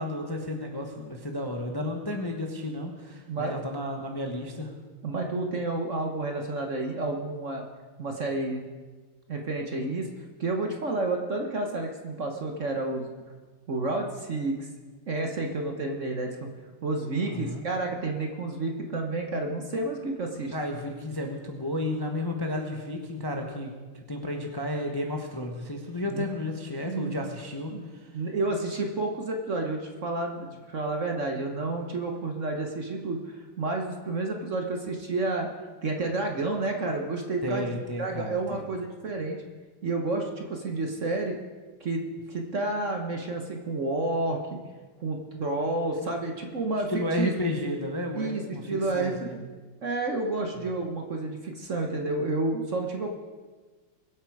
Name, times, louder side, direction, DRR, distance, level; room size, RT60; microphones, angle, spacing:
voice 1, 0.0-4.7 17.2-17.6 20.5-23.7 24.1-27.7 37.4-38.6 46.9-48.6 48.9-49.4, left 1 dB, 15° left, 2 dB, 0.9 m, -32 dB
voice 2, 3.3-3.6 5.0-7.6 8.0-8.7 9.3-10.1 10.4-13.1 13.7-14.7 15.1-16.5 16.8-20.5 26.1-26.3 26.8-27.2 27.7-27.8 28.1-35.5 35.8-39.4 39.8-41.4 41.8-42.0 42.3-44.6 45.0-47.3 48.2-49.5 49.8-53.1, right 2 dB, 45° right, 3 dB, 1.3 m, -30 dB
22.5 x 8.1 x 4.8 m, 1.4 s
omnidirectional pair, 2.1 m